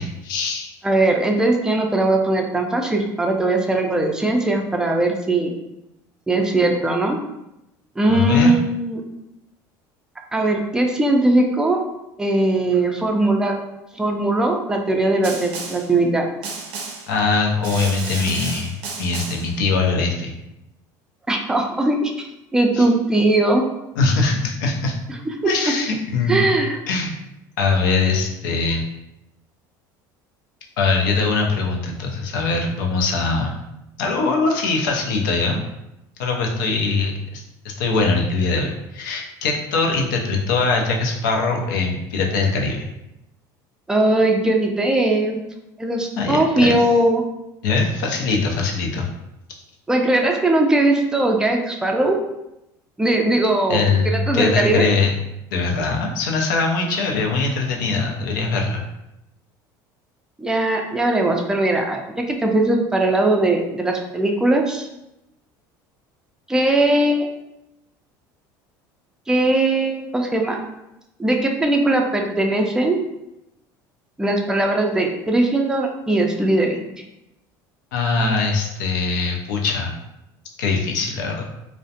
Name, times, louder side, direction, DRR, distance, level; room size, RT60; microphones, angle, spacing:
voice 1, 0.0-0.7 8.1-8.5 17.1-18.7 19.0-20.3 22.7-22.8 24.0-24.9 25.5-26.5 26.9-27.2 27.6-28.8 30.8-33.6 34.0-35.6 36.2-38.7 38.9-42.9 46.2-46.7 47.6-49.1 53.7-55.1 55.5-58.8 77.9-79.9 80.6-81.4, left 4 dB, 85° left, 1 dB, 0.5 m, -22 dB
voice 2, 0.8-5.6 6.3-7.2 8.0-9.0 10.3-11.8 12.2-13.6 13.9-16.3 21.3-22.1 22.5-23.6 26.3-26.8 43.9-45.4 45.8-47.2 49.9-52.2 53.0-54.9 60.4-64.9 66.5-67.3 69.3-70.6 71.2-73.0 74.2-76.9, right 2 dB, 5° right, 2 dB, 0.4 m, -19 dB
Snare drum, 15.2-15.9 16.4-17.1 17.6-19.5, right 4 dB, 70° right, 0.5 m, -32 dB
2.3 x 2.1 x 2.7 m, 0.89 s
supercardioid pair, 90°, 10 cm